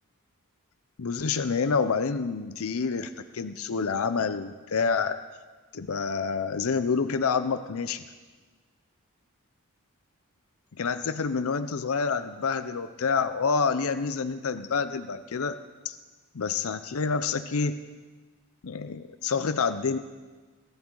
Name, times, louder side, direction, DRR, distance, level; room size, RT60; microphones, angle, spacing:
voice 1, 1.0-5.2 5.7-8.0 10.8-15.6 15.8-16.0 16.3-17.8 18.6-20.0, left 5 dB, 70° left, 10 dB, 0.6 m, -28 dB
22.0 x 11.5 x 3.9 m, 1.3 s
head